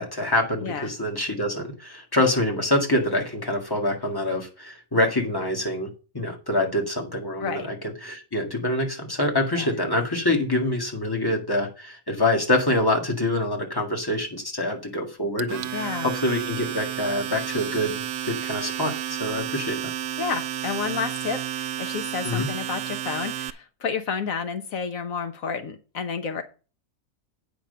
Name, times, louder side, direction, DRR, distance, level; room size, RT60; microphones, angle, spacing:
voice 1, 0.0-19.9 22.2-22.5, left 1 dB, 15° left, 2 dB, 2.0 m, -26 dB
Domestic sounds home sounds, 15.4-23.5, right 11 dB, 70° right, 1.0 m, -31 dB
voice 2, 15.7-16.1 20.2-26.4, left 6 dB, 75° left, 8 dB, 1.3 m, -30 dB
8.8 x 5.2 x 6.7 m, 0.33 s
omnidirectional pair, 1.5 m